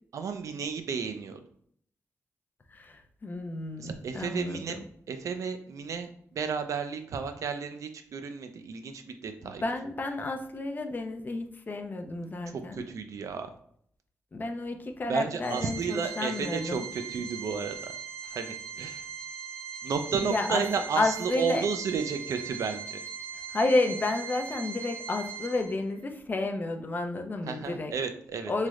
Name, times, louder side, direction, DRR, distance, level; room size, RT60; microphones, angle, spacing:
voice 1, 0.1-1.4 3.8-4.8 5.1-9.6 12.5-13.5 15.1-17.9 18.2-19.0 19.8-23.0 27.5-28.7, right 6 dB, 70° right, 8 dB, 0.4 m, -33 dB
voice 2, 2.7-4.9 9.4-12.8 14.3-16.8 20.2-20.6 21.0-21.6 23.5-27.9 28.5-28.7, left 2 dB, 35° left, 5 dB, 0.4 m, -31 dB
Organ, 15.4-26.0, right 7 dB, 45° right, 0.8 m, -40 dB
3.2 x 2.0 x 3.5 m, 0.64 s
cardioid pair, 100°, 6 cm